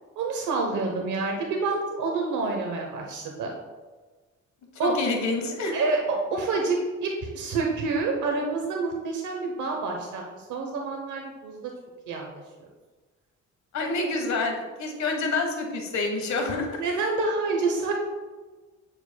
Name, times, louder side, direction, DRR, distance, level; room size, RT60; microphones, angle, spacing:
voice 1, 0.2-3.5 4.8-4.9 5.7-6.0 6.3-11.6 12.1-12.2 16.8-17.9, right 3 dB, 75° right, 1 dB, 0.9 m, -28 dB
voice 2, 4.7-5.8 13.7-16.8, left 3 dB, 65° left, 3 dB, 1.4 m, -28 dB
9.0 x 6.6 x 2.2 m, 1.3 s
cardioid pair, 90°, 30 cm